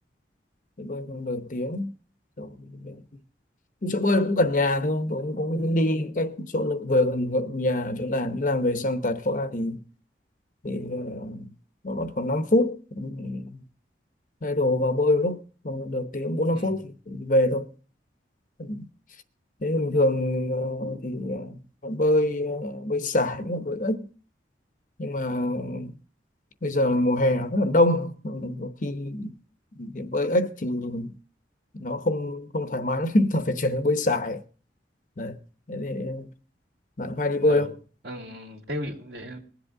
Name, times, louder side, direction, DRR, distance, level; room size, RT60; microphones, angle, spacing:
voice 1, 0.8-1.9 2.4-3.0 3.8-9.8 10.6-11.5 11.8-13.6 14.4-17.7 18.6-18.8 19.6-24.1 25.0-25.9 26.6-29.3 29.8-31.1 31.8-34.4 35.2-35.4 35.7-36.3 37.0-37.7, left 1 dB, 45° left, 0.8 m, -25 dB
voice 2, 38.0-39.4, left 1 dB, 60° right, 2.4 m, -36 dB
20.5 x 8.0 x 3.6 m
head